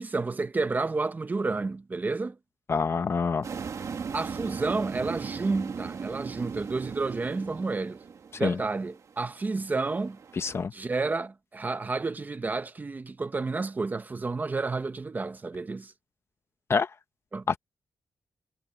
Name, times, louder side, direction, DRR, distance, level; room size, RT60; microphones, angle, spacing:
voice 1, 0.0-2.4 4.1-8.0 8.4-10.2 10.7-15.9 17.3-17.6, right 3 dB, 25° right, 1.0 m, -30 dB
voice 2, 2.7-3.4 8.3-8.6 10.3-10.7 16.7-16.9 17.5-17.6, left 5 dB, 35° left, 0.8 m, -26 dB
sound 1, 3.4-10.6, right 6 dB, 45° right, 2.0 m, -38 dB
wide cardioid pair, 155°, 7 cm